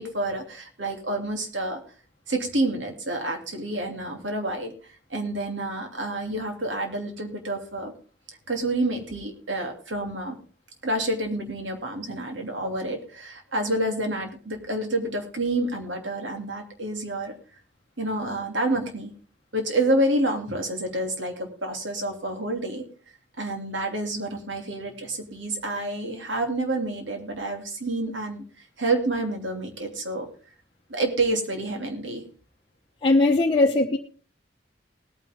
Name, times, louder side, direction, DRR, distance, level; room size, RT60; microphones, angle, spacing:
voice 1, 0.0-1.8 2.3-4.7 5.1-7.9 8.5-10.4 10.8-17.3 18.0-19.1 19.5-22.8 23.4-28.4 28.8-30.3 30.9-32.2, right 1 dB, 90° right, 2.8 m, -28 dB
voice 2, 33.0-34.0, left 2 dB, 30° left, 0.9 m, -19 dB
19.5 x 9.3 x 3.6 m
head